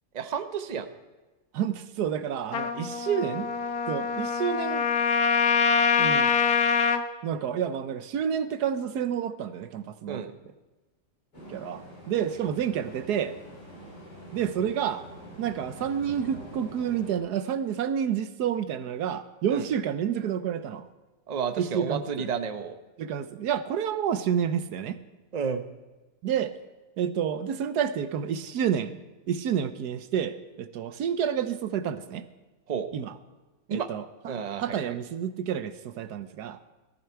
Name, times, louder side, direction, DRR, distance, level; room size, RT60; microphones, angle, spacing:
voice 1, 0.1-0.9 10.1-10.3 19.5-19.7 21.3-22.8 25.3-25.6 32.7-32.9 33.7-33.9 34.2-35.0, right 6 dB, 35° right, 8 dB, 0.7 m, -31 dB
voice 2, 1.5-3.5 3.9-4.9 6.0-6.3 7.2-10.3 11.5-13.4 14.3-15.0 15.4-20.9 21.6-22.3 23.0-25.0 26.2-26.5 27.0-29.0 29.3-32.2 32.9-33.2 33.7-36.6, right 8 dB, 75° right, 12 dB, 1.3 m, -29 dB
Trumpet, 2.5-7.0, left 6 dB, 65° left, 1.3 m, -24 dB
sound 1, 11.3-17.2, equal, 85° left, 6.2 m, -45 dB
18.0 x 14.0 x 4.6 m, 1.2 s
omnidirectional pair, 1.8 m